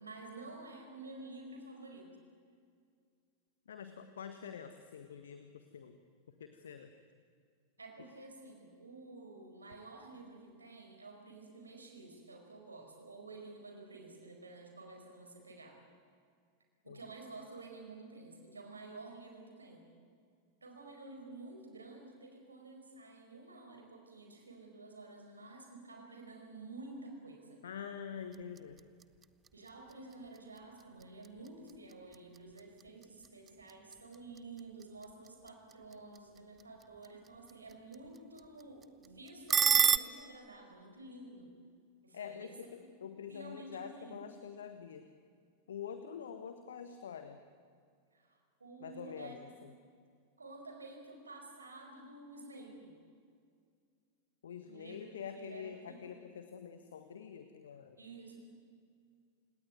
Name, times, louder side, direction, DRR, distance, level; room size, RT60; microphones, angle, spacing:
voice 1, 0.0-2.2 7.8-15.8 16.8-19.8 20.6-27.6 29.5-41.5 42.0-42.6 43.3-44.3 48.1-49.6 50.4-52.9 54.6-55.1 55.3-56.1 58.0-58.4, right 2 dB, 75° right, 3 dB, 4.7 m, -51 dB
voice 2, 3.7-6.0 6.4-7.0 16.9-17.0 27.6-28.8 42.1-45.1 45.7-47.4 48.8-49.7 54.4-58.0, left 7 dB, 65° left, 9 dB, 1.6 m, -46 dB
sound 1, 28.2-40.0, right 7 dB, 20° right, 0.9 m, -37 dB
29.5 x 18.5 x 9.4 m, 2.2 s
figure-of-eight pair, 90°, 0 cm